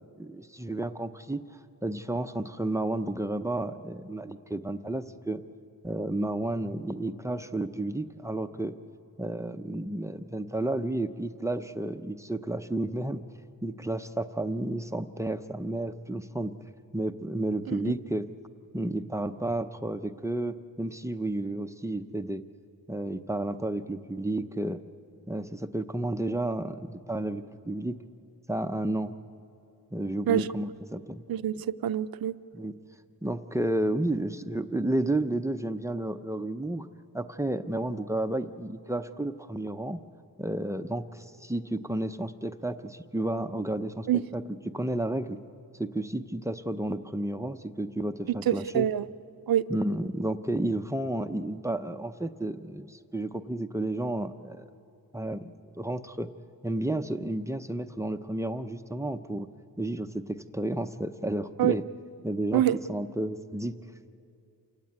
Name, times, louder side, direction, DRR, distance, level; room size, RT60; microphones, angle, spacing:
voice 1, 0.0-1.4 1.8-5.4 5.8-8.7 9.2-13.2 13.6-16.5 16.9-18.3 18.7-22.4 22.9-24.8 25.3-28.0 28.5-29.1 29.9-31.2 32.5-32.7 33.2-36.9 37.1-40.0 40.4-44.4 44.7-45.4 45.7-48.9 49.7-54.6 55.1-56.3 56.6-59.5 59.8-61.8 62.2-62.6 62.9-63.7, right 1 dB, 10° right, 9 dB, 0.6 m, -31 dB
voice 2, 31.3-32.3 44.1-44.2 48.3-49.1 49.5-49.6 61.6-61.7 62.5-62.8, right 11 dB, 70° right, 14 dB, 0.6 m, -26 dB
27.5 x 16.0 x 9.4 m, 2.5 s
wide cardioid pair, 135°, 38 cm